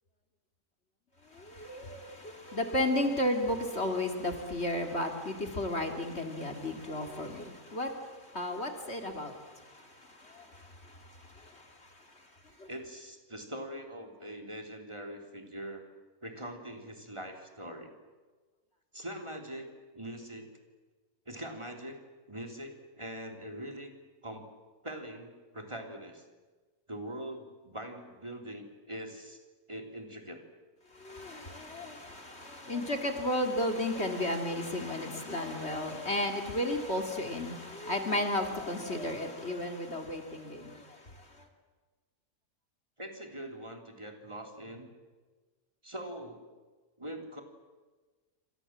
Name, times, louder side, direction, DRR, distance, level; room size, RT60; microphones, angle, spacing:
voice 1, 1.2-12.3 12.6-12.7 30.9-41.5, left 1 dB, 45° left, 4 dB, 2.8 m, -34 dB
voice 2, 12.7-15.8 16.2-17.9 18.9-20.5 21.3-22.0 22.3-23.9 24.2-24.5 24.8-26.2 26.9-29.4 29.7-30.4 43.0-44.9 45.8-46.4 47.0-47.4, right 1 dB, 20° right, 3 dB, 3.2 m, -42 dB
28.5 x 26.0 x 7.5 m, 1.4 s
omnidirectional pair, 1.6 m